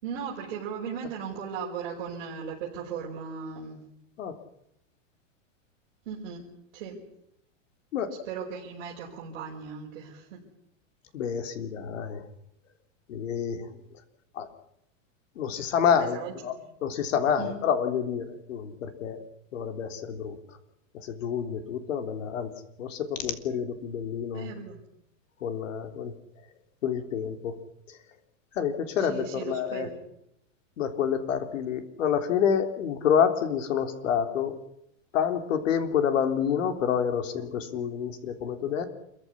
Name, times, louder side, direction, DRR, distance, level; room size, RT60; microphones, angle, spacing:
voice 1, 0.0-3.8 6.1-6.5 6.7-7.0 8.3-10.4 15.9-16.7 17.4-17.6 24.3-24.8 29.0-30.0, right 6 dB, 45° right, -4 dB, 5.7 m, -37 dB
voice 2, 11.1-12.2 13.1-13.8 14.3-14.5 15.4-16.6 16.8-19.2 19.5-20.4 20.9-22.5 22.8-24.5 25.4-26.1 26.8-27.6 27.9-28.0 28.5-29.9 30.8-34.6 35.1-38.9, left 8 dB, 75° left, 8 dB, 3.7 m, -28 dB
27.5 x 15.0 x 10.0 m, 0.79 s
supercardioid pair, 180°, 39 cm